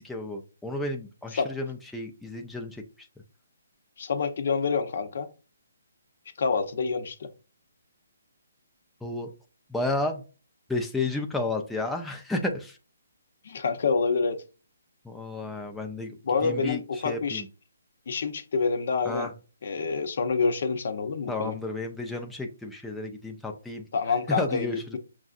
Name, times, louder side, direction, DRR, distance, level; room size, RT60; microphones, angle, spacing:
voice 1, 0.0-3.1 9.0-9.3 9.7-10.2 10.7-12.8 15.0-16.2 16.4-17.5 19.1-19.3 21.3-23.8 24.3-24.8, left 2 dB, 5° left, 0.4 m, -32 dB
voice 2, 4.0-5.3 6.4-7.3 13.4-14.4 16.2-17.4 18.1-19.3 19.6-21.5 23.9-24.7, left 5 dB, 60° left, 0.7 m, -27 dB
6.1 x 2.5 x 2.4 m
hypercardioid pair, 150°, 0 cm